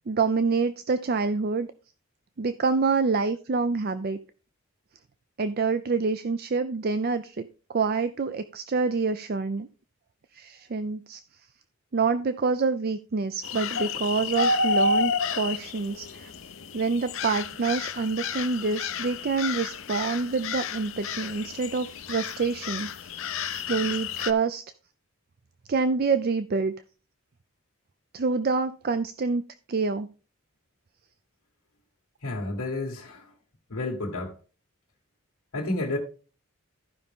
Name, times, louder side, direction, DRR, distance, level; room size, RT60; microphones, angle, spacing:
voice 1, 0.1-1.7 2.4-4.2 5.4-9.7 10.3-11.2 11.9-16.3 16.7-23.2 23.5-24.6 25.7-26.7 28.1-29.4 29.7-30.1, right 4 dB, 45° right, 0.4 m, -27 dB
sound 1, 13.4-24.3, left 3 dB, 60° left, 0.7 m, -30 dB
voice 2, 32.2-33.3 33.7-34.3 35.5-36.0, left 2 dB, 80° left, 1.8 m, -30 dB
14.0 x 5.4 x 3.6 m
head